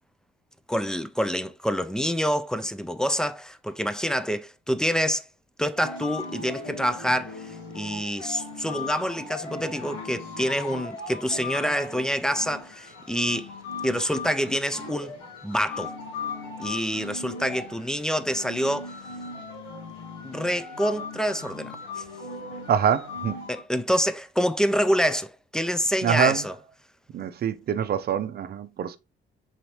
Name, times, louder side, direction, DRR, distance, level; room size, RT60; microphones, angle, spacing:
voice 1, 0.7-5.3 5.6-13.5 13.8-15.2 15.4-16.0 16.6-19.0 20.2-22.0 23.5-26.6, equal, 5° left, 0.4 m, -27 dB
sound 1, 5.8-23.6, left 4 dB, 90° left, 1.5 m, -38 dB
voice 2, 22.7-23.4 26.0-26.4 27.1-29.0, right 8 dB, 55° right, 0.5 m, -24 dB
4.0 x 3.1 x 2.8 m
cardioid pair, 90°, 20 cm